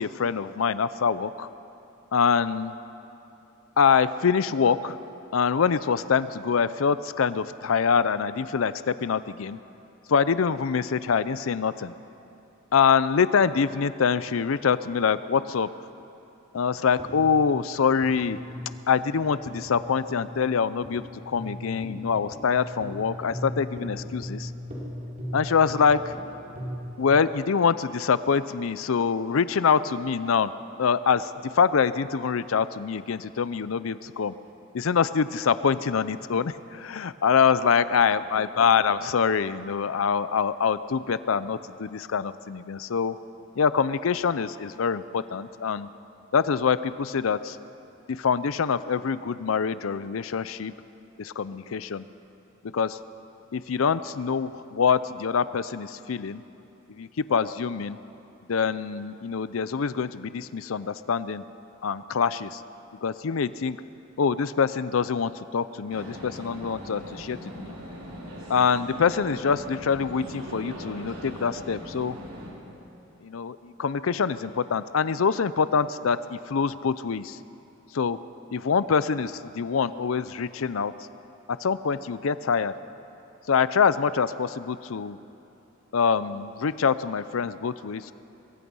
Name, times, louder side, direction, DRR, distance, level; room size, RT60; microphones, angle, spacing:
voice 1, 0.0-1.5 2.1-2.7 3.8-5.0 5.3-9.6 10.1-11.9 12.7-15.7 16.5-18.4 18.9-24.5 25.3-26.1 27.0-30.5 30.8-34.3 34.7-43.2 43.6-45.9 46.3-47.6 48.1-50.7 51.2-52.0 52.6-53.0 53.5-56.4 56.9-58.0 58.5-61.4 61.8-62.6 63.0-63.8 64.2-67.7 68.5-72.2 73.2-77.4 77.9-78.2 78.5-80.9 81.5-82.7 83.5-85.2 85.9-88.1, left 6 dB, 90° left, 15 dB, 0.5 m, -25 dB
sound 1, 17.0-27.0, equal, 40° right, 4.6 m, -39 dB
sound 2, 65.9-72.5, equal, 90° right, 5.0 m, -40 dB
24.0 x 21.5 x 5.5 m, 2.9 s
head